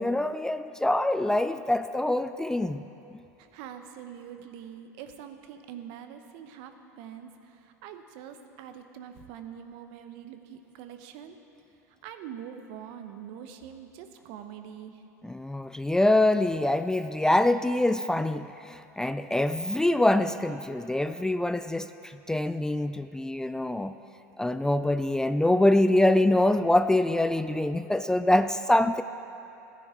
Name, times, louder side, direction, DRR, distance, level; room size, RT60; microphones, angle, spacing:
voice 1, 0.0-2.8 3.1-3.2 15.2-24.0 24.4-29.0, left 1 dB, 5° left, 11 dB, 0.3 m, -25 dB
voice 2, 3.4-11.4 11.9-15.0, right 9 dB, 65° right, 8 dB, 0.9 m, -44 dB
15.0 x 10.0 x 4.5 m, 2.8 s
hypercardioid pair, 85°, 9 cm